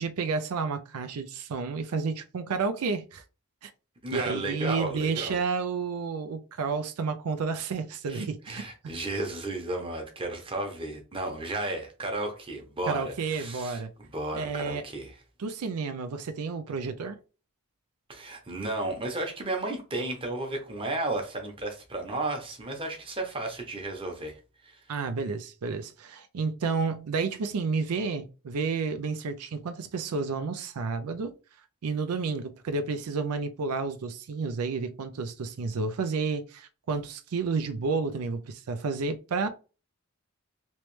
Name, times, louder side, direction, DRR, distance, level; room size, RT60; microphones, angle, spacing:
voice 1, 0.0-3.2 3.6-3.7 4.1-8.6 12.9-13.9 14.3-14.8 15.4-17.2 24.9-31.3 31.8-39.5, right 4 dB, 85° right, 0.4 m, -31 dB
voice 2, 4.0-5.4 8.1-15.1 18.1-24.8, right 2 dB, 25° right, 0.9 m, -33 dB
3.1 x 3.0 x 3.1 m
head